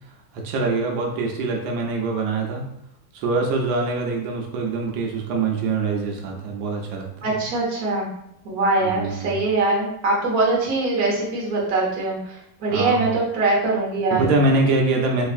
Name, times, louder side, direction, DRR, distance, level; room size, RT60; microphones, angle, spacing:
voice 1, 0.4-2.6 3.1-7.3 8.8-9.4 12.7-13.1 14.1-15.3, right 3 dB, 90° right, 0 dB, 1.4 m, -24 dB
voice 2, 7.2-8.1 8.4-14.3, right 3 dB, 55° right, -3 dB, 1.4 m, -22 dB
3.4 x 3.2 x 2.4 m, 0.80 s
omnidirectional pair, 2.0 m